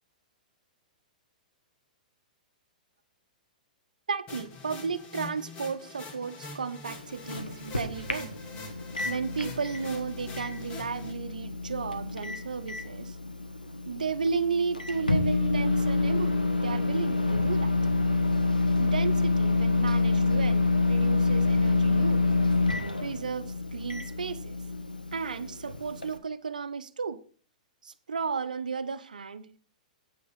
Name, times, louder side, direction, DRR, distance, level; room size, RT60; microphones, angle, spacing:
voice 1, 4.1-8.3 9.0-13.2 13.9-17.7 18.8-22.2 23.0-24.6 25.1-27.2 27.8-29.7, right 5 dB, 75° right, 11 dB, 0.9 m, -34 dB
sound 1, 4.3-11.1, left 3 dB, 30° left, 2.7 m, -44 dB
Microwave oven, 6.9-26.2, left 3 dB, 90° left, 1.4 m, -28 dB
9.3 x 8.5 x 5.5 m, 0.40 s
figure-of-eight pair, 110°, 4 cm